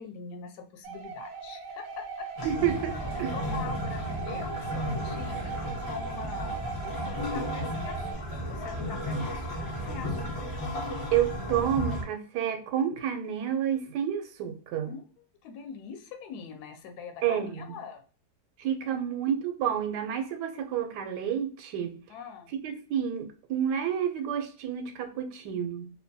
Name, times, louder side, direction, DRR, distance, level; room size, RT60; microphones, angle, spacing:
voice 1, 0.0-2.3 3.2-10.3 14.9-15.0 15.4-18.0 18.8-19.2 22.1-22.5, left 7 dB, 75° left, 1.1 m, -43 dB
sound 1, 0.8-8.1, right 6 dB, 70° right, 0.9 m, -39 dB
sound 2, 2.4-12.0, equal, 45° left, 0.4 m, -34 dB
voice 2, 2.4-2.9 3.2-3.3 11.1-14.9 17.2-17.7 18.6-22.0 22.6-25.9, right 9 dB, 90° right, 1.2 m, -29 dB
2.9 x 2.2 x 2.6 m
omnidirectional pair, 1.7 m